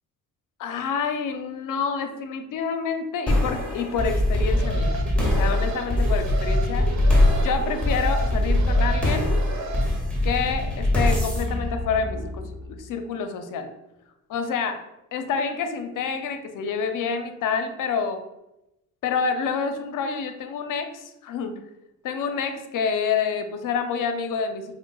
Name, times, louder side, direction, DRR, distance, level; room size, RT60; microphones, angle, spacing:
voice 1, 0.6-4.9 5.2-6.9 7.3-9.4 10.2-13.7 14.3-14.8 15.1-18.2 19.0-21.6 22.0-24.8, left 6 dB, 60° left, 7 dB, 0.5 m, -28 dB
sound 1, 3.3-12.7, left 1 dB, 5° left, 1.0 m, -23 dB
Alarm, 4.2-9.8, right 5 dB, 50° right, 0.5 m, -35 dB
5.1 x 2.1 x 2.3 m, 0.88 s
supercardioid pair, 65°, 36 cm